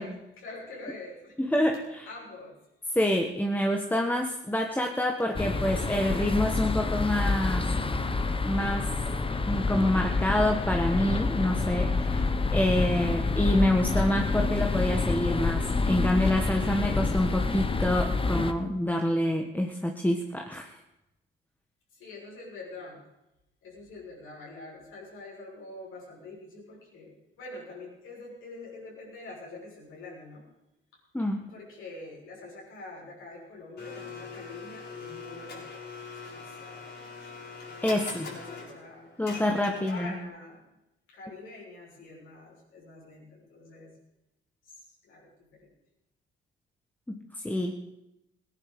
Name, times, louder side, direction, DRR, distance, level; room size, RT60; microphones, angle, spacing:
voice 1, 0.0-1.5 2.0-2.6 21.9-23.0 23.6-30.4 31.5-35.8 36.2-37.1 38.0-39.1 39.7-40.6 41.1-44.0 44.7-45.7, left 2 dB, 70° left, -3 dB, 6.6 m, -45 dB
voice 2, 1.4-2.1 2.9-7.6 8.5-8.9 9.4-20.7 31.1-31.5 37.8-38.3 39.2-40.1 47.1-47.8, left 1 dB, 10° left, 2 dB, 1.5 m, -27 dB
sound 1, 5.3-18.5, left 3 dB, 25° left, 1.3 m, -28 dB
Domestic sounds home sounds, 33.8-40.3, left 4 dB, 55° left, 6.9 m, -42 dB
17.0 x 10.5 x 6.8 m, 0.91 s
supercardioid pair, 75°, 21 cm